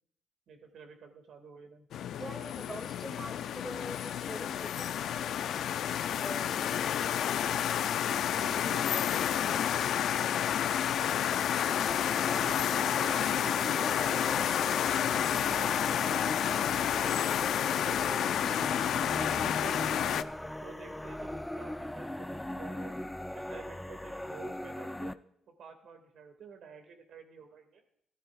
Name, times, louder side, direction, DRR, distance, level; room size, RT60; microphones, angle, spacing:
voice 1, 0.5-1.9 8.3-10.3 10.7-11.8 12.4-14.3 14.8-18.4 19.1-20.2 20.6-22.9 23.3-25.1 25.5-27.8, right 6 dB, 70° right, 5 dB, 2.1 m, -50 dB
sound 1, 1.9-20.2, left 10 dB, 70° left, 0.4 m, -30 dB
voice 2, 2.2-7.2, equal, 10° right, 5 dB, 2.0 m, -45 dB
sound 2, 11.5-25.1, left 1 dB, 5° left, 0.4 m, -39 dB
15.5 x 12.0 x 2.4 m, 0.71 s
cardioid pair, 90°, 0 cm